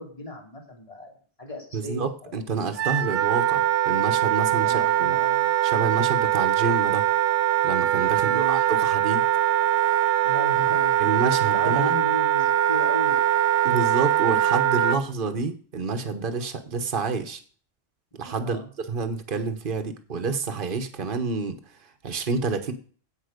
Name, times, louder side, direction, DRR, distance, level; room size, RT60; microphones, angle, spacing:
voice 1, 0.0-2.3 4.5-5.5 8.2-8.6 10.2-11.2 11.5-13.2 18.4-18.7, left 1 dB, 35° left, 0 dB, 3.0 m, -36 dB
voice 2, 1.7-5.2 5.6-7.1 7.6-9.2 11.0-11.9 13.6-17.4 18.2-21.6 22.0-22.7, right 4 dB, 55° right, 8 dB, 1.3 m, -28 dB
Wind instrument woodwind instrument, 2.8-15.0, right 12 dB, 70° right, 0.9 m, -22 dB
16.0 x 5.5 x 5.1 m, 0.42 s
omnidirectional pair, 1.1 m